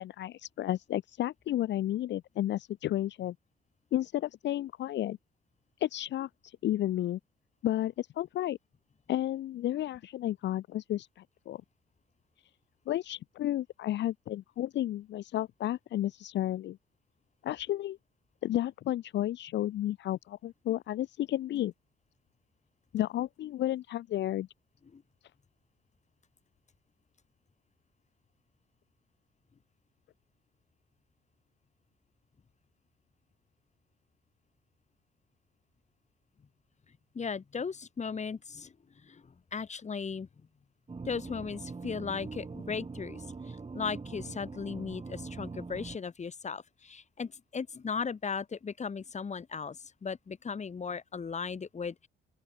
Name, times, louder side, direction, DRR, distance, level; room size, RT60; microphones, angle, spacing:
voice 1, 0.0-3.3 3.9-5.2 5.8-7.2 7.6-8.6 9.1-11.6 12.9-16.8 17.4-18.0 18.4-21.7 22.9-24.5, left 13 dB, 65° left, 0.6 m, -32 dB
voice 2, 37.1-38.7 39.0-39.2 39.5-40.3 41.0-52.1, left 5 dB, 35° left, 2.3 m, -37 dB
sound 1, 40.9-46.0, right 4 dB, 30° right, 6.2 m, -42 dB
open air
cardioid pair, 90°, 20 cm